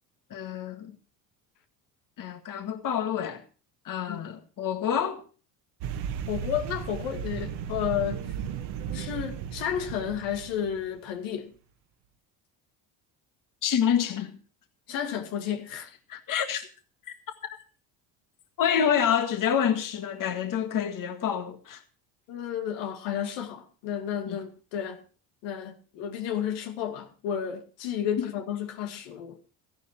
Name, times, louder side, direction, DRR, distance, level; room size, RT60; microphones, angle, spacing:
voice 1, 0.3-1.0 2.2-3.4 3.9-5.2 13.6-14.4 16.1-16.7 17.4-17.6 18.6-21.8 24.3-24.4 28.2-28.3, left 8 dB, 45° left, 1.9 m, -27 dB
sound 1, 5.8-10.9, right 8 dB, 65° right, 1.8 m, -35 dB
voice 2, 6.3-8.2 8.9-11.5 14.9-15.9 22.3-25.0 25.4-29.4, left 9 dB, 80° left, 2.3 m, -32 dB
14.5 x 11.5 x 4.5 m
supercardioid pair, 85°, 43 cm